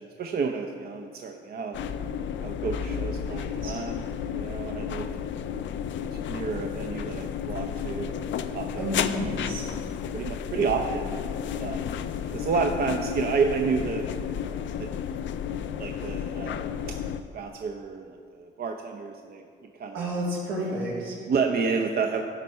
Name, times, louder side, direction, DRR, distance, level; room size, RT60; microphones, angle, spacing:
voice 1, 0.0-1.8 2.4-4.0 4.3-5.1 6.3-9.0 10.1-11.2 11.6-11.9 12.3-14.0 14.8-14.9 15.8-16.7 17.3-19.4 19.8-20.1 21.3-22.2, right 5 dB, 50° right, 4 dB, 0.6 m, -30 dB
sound 1, 1.7-17.2, left 8 dB, 70° left, 0.5 m, -32 dB
voice 2, 3.2-3.8 8.7-9.7 19.9-21.2, equal, 90° right, -5 dB, 2.6 m, -31 dB
13.0 x 4.5 x 5.4 m, 2.2 s
cardioid pair, 90°, 20 cm